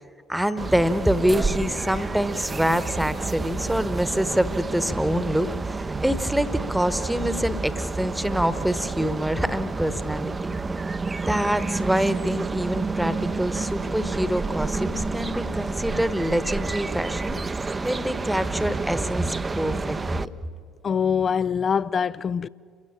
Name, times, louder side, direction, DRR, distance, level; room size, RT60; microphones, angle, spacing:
voice 1, 0.3-10.5 11.2-17.4 17.8-20.3, equal, 5° right, 1.2 m, -25 dB
sound 1, 0.6-20.3, right 3 dB, 20° right, 0.7 m, -29 dB
voice 2, 20.8-22.5, left 7 dB, 35° left, 0.5 m, -24 dB
28.5 x 16.0 x 8.7 m
figure-of-eight pair, 55°, 0 cm